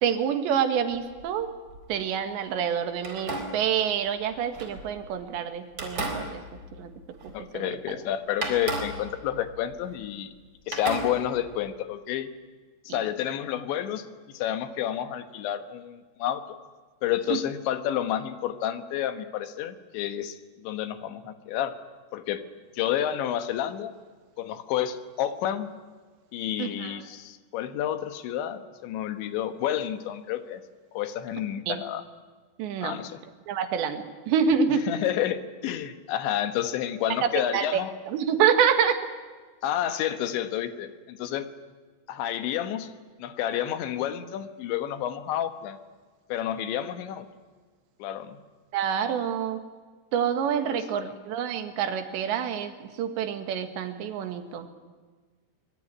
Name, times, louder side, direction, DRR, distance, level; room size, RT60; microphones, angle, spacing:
voice 1, 0.0-1.5 1.9-6.4 6.8-6.9 7.2-8.0 12.9-13.0 17.3-17.4 26.6-27.0 31.7-31.8 32.6-33.0 33.5-34.9 37.2-37.8 38.1-39.0 48.7-49.6 50.1-54.7, right 7 dB, 75° right, 8 dB, 4.0 m, -27 dB
sound 1, 0.9-2.1 3.0-5.2 5.7-7.6 7.9-8.0 8.4-10.4 10.7-11.7, right 2 dB, 25° right, 4.5 m, -36 dB
voice 2, 7.3-10.3 10.7-12.3 12.9-16.6 17.0-21.8 22.1-22.4 22.7-23.9 24.4-25.7 26.3-30.6 30.9-32.0 32.8-33.2 34.9-37.9 39.6-41.5 42.1-42.9 43.2-45.8 46.3-47.3 48.0-48.4 50.7-51.1, left 11 dB, 80° left, 9 dB, 3.6 m, -30 dB
24.0 x 22.5 x 9.9 m, 1.4 s
omnidirectional pair, 5.2 m